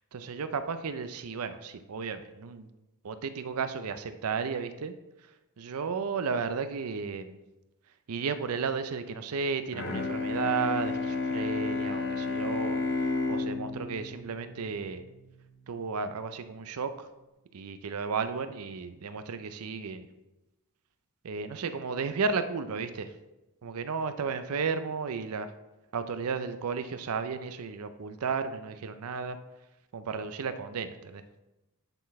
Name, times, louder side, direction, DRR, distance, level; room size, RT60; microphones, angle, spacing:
voice 1, 0.1-2.7 3.0-4.9 5.6-7.4 8.1-15.0 15.7-17.1 17.5-20.1 21.2-23.1 23.6-25.5 25.9-29.4 29.9-31.2, right 5 dB, 75° right, 11 dB, 0.5 m, -33 dB
Bowed string instrument, 9.7-15.4, left 3 dB, 50° left, 0.8 m, -32 dB
9.0 x 4.0 x 4.1 m, 1.0 s
head